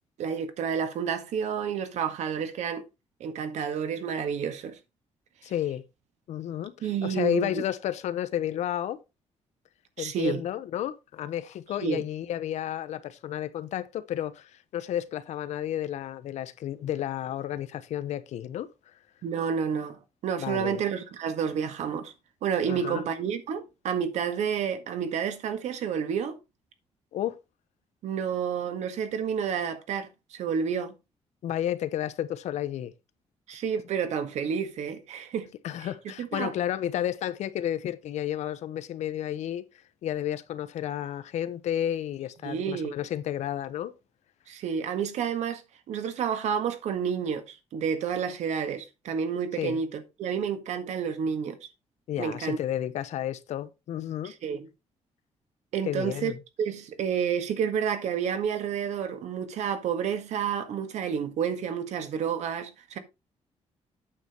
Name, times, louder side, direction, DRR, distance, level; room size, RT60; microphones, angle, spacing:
voice 1, 0.2-2.8 3.2-4.8 6.8-7.6 10.0-10.4 11.8-12.0 19.2-22.1 22.4-26.4 28.0-30.9 33.5-35.5 36.2-36.5 42.4-43.0 44.5-45.6 45.9-51.6 52.2-52.6 54.2-54.7 55.7-56.3 56.6-63.0, right 7 dB, 85° right, 1.7 m, -30 dB
voice 2, 5.4-5.8 6.3-9.0 10.0-18.7 20.4-20.8 22.7-23.0 27.1-27.4 31.4-32.9 35.6-39.6 40.0-43.9 49.6-49.8 52.1-54.3 55.9-56.4, left 11 dB, 80° left, 1.0 m, -32 dB
9.0 x 7.0 x 4.4 m
cardioid pair, 170°, 12 cm